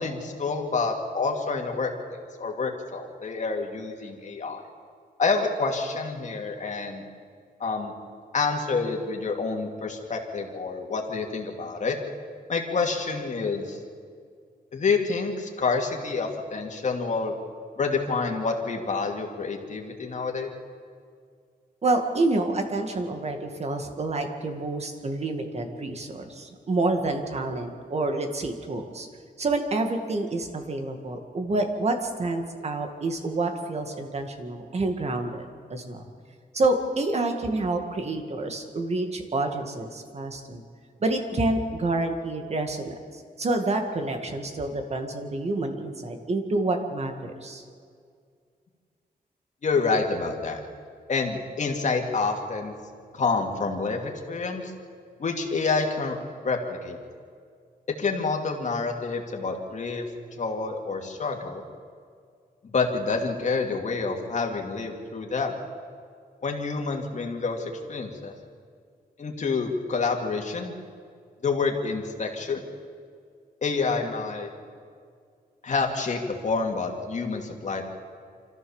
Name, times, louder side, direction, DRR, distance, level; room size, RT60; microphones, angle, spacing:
voice 1, 0.0-4.6 5.2-7.0 7.6-7.9 8.3-12.0 12.5-13.8 14.7-17.3 17.8-20.5 49.6-50.6 51.1-52.7 53.1-54.7 55.2-56.2 56.4-57.0 58.0-60.0 60.4-61.6 62.6-65.5 66.4-68.3 69.2-70.7 71.4-72.6 73.6-74.5 75.6-77.8, left 4 dB, 50° left, 1 dB, 2.5 m, -28 dB
voice 2, 21.8-29.1 29.4-36.0 36.5-40.6 41.0-47.6, right 2 dB, 40° right, 5 dB, 2.0 m, -28 dB
25.5 x 14.5 x 7.2 m, 2.1 s
wide cardioid pair, 170°, 16 cm